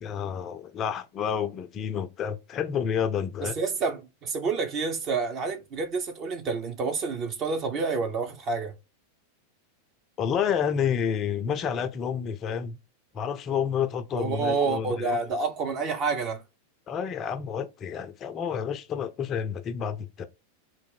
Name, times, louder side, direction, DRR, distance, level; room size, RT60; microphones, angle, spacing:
voice 1, 0.0-3.6 10.2-12.8 13.1-15.2 16.9-20.3, left 7 dB, 30° left, 0.5 m, -29 dB
voice 2, 3.4-8.7 14.1-16.4, right 4 dB, 35° right, 0.9 m, -28 dB
4.1 x 2.5 x 4.0 m
figure-of-eight pair, 90°, 0 cm